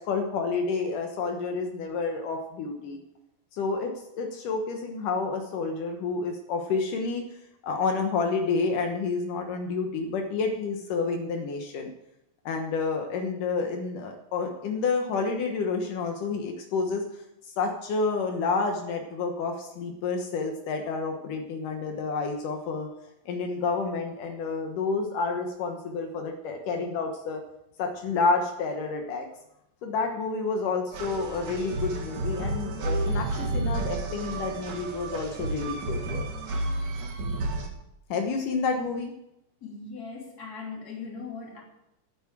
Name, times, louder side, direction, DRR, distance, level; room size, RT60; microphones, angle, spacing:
voice 1, 0.0-3.0 3.5-7.2 7.6-11.9 12.5-17.0 17.6-22.9 23.3-27.4 27.8-29.3 29.8-36.3 38.1-39.1, left 4 dB, 75° left, 3 dB, 2.8 m, -29 dB
sound 1, 30.9-37.7, right 2 dB, 70° right, 3.2 m, -31 dB
voice 2, 39.6-41.6, left 4 dB, 30° left, -1 dB, 3.3 m, -39 dB
12.5 x 9.4 x 7.3 m, 0.84 s
omnidirectional pair, 3.8 m